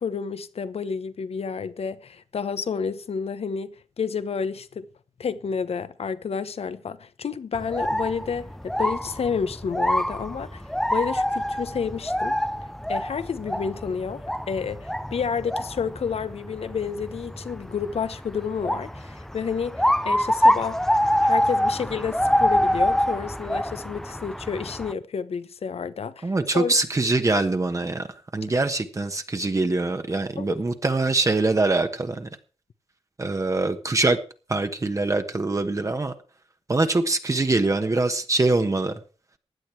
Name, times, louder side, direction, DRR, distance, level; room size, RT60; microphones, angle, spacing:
voice 1, 0.0-4.9 5.2-10.6 10.9-12.4 12.9-20.8 21.2-26.7 30.4-30.6, left 6 dB, 70° left, 1.0 m, -30 dB
sound 1, 7.5-24.9, equal, 5° left, 0.6 m, -26 dB
voice 2, 26.2-28.0 28.3-32.3 33.2-34.2 34.5-36.1 36.7-39.0, right 2 dB, 30° right, 1.2 m, -23 dB
16.0 x 10.0 x 4.7 m
wide cardioid pair, 100°, 11 cm